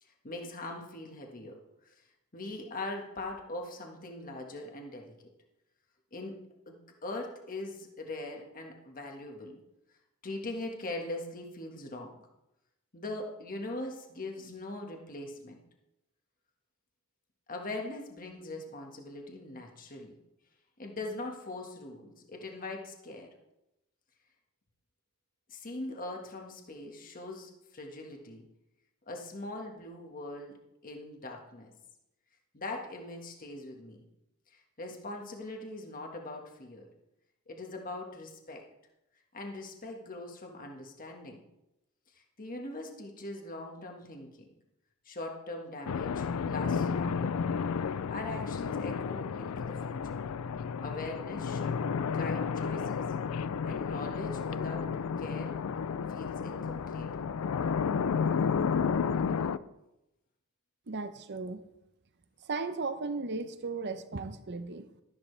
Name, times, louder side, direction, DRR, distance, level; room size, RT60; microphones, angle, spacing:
voice 1, 0.0-2.0 2.3-5.3 6.1-6.4 6.7-9.6 10.2-12.2 12.9-15.6 17.5-20.2 20.8-23.3 25.5-28.5 29.1-30.6 30.8-31.7 32.5-34.0 34.5-36.9 37.5-38.6 39.3-41.4 42.1-44.4 45.1-47.4 48.1-50.2 50.8-51.8 52.1-53.0 53.6-54.9 55.2-55.6 56.1-57.2, left 2 dB, 40° left, 1.6 m, -41 dB
sound 1, 45.9-59.6, left 6 dB, 80° left, 0.4 m, -32 dB
voice 2, 60.9-61.6 62.4-65.0, right 3 dB, 55° right, 0.8 m, -36 dB
13.0 x 11.0 x 3.4 m
head